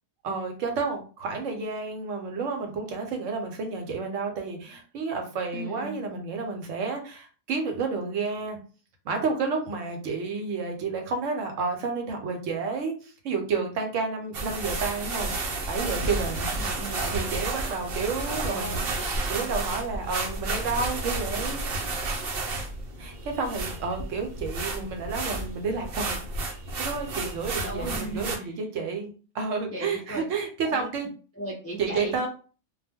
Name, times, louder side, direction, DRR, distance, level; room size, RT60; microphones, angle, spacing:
voice 1, 0.2-8.6 9.0-16.5 17.1-18.9 19.3-21.6 23.0-26.2 26.8-31.1 31.8-32.3, right 4 dB, 75° right, 3 dB, 1.0 m, -30 dB
voice 2, 5.5-6.0 16.6-17.2 18.3-19.1 27.6-28.5 29.7-30.2 30.6-30.8 31.4-32.3, right 1 dB, 25° left, -3 dB, 0.3 m, -37 dB
sound 1, 14.3-28.4, right 2 dB, 60° right, 0.7 m, -31 dB
2.3 x 2.1 x 3.4 m, 0.38 s
omnidirectional pair, 1.3 m